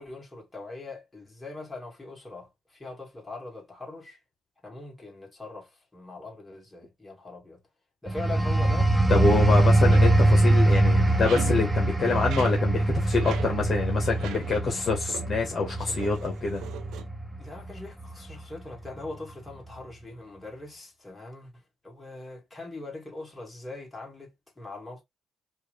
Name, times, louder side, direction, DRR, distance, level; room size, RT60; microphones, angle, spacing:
voice 1, 0.0-4.2 4.6-7.6 8.0-8.9 17.4-25.0, left 2 dB, 10° left, 2.6 m, -41 dB
sound 1, 8.1-18.4 18.8-19.1, right 1 dB, 10° right, 0.7 m, -23 dB
voice 2, 9.1-16.6, left 4 dB, 40° left, 1.5 m, -26 dB
sound 2, 9.7-14.8 15.1-15.4 15.8-17.1, right 9 dB, 85° right, 0.7 m, -42 dB
4.5 x 2.7 x 3.2 m
cardioid pair, 90°, 0 cm